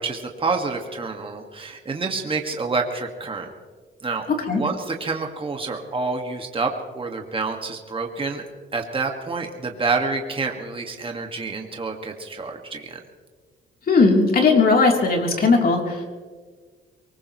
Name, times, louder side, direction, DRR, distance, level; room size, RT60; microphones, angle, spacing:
voice 1, 0.0-3.5 4.0-4.3 4.5-8.4 8.7-13.0, right 4 dB, 25° right, 3 dB, 1.8 m, -28 dB
voice 2, 13.9-16.1, left 3 dB, 50° left, 1 dB, 3.3 m, -18 dB
23.5 x 19.5 x 3.1 m, 1.5 s
cardioid pair, 90°, 20 cm